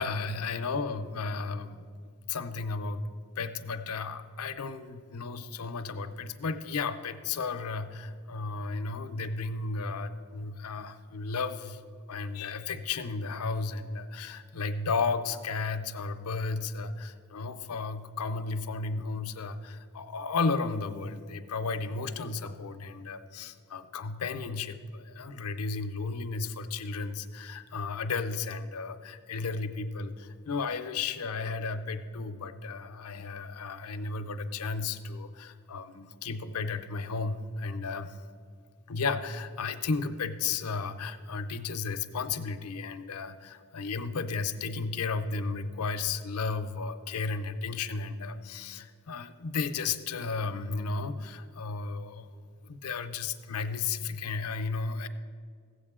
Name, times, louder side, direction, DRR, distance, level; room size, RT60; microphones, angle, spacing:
voice 1, 0.0-1.9 2.3-3.1 3.4-11.8 12.1-38.2 38.9-52.3 52.6-55.1, left 4 dB, 80° left, 9 dB, 0.6 m, -34 dB
15.5 x 7.8 x 3.7 m, 2.1 s
head